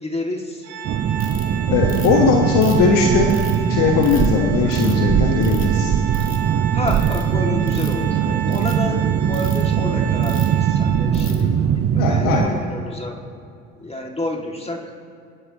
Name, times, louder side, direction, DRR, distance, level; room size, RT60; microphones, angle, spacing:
voice 1, 0.0-0.7 6.7-13.2 13.8-15.0, left 1 dB, 15° left, 1 dB, 2.3 m, -29 dB
Organ, 0.6-11.3, right 10 dB, 60° right, 2.0 m, -32 dB
sound 1, 0.8-12.5, right 8 dB, 35° right, 0.7 m, -20 dB
Ratchet pawl, 1.2-1.4 1.9-2.2 2.6-3.6 4.0-4.3 4.7-5.0 5.4-5.8 6.1-6.4 6.9-7.2 7.6-8.0 8.5-8.7 9.3-9.6 10.2-10.5 11.1-11.4, left 5 dB, 30° left, 2.3 m, -39 dB
voice 2, 1.7-3.3 3.7-6.0 12.0-12.6, left 5 dB, 55° left, 2 dB, 1.5 m, -19 dB
23.5 x 11.0 x 3.0 m, 2.4 s
figure-of-eight pair, 60°, 39 cm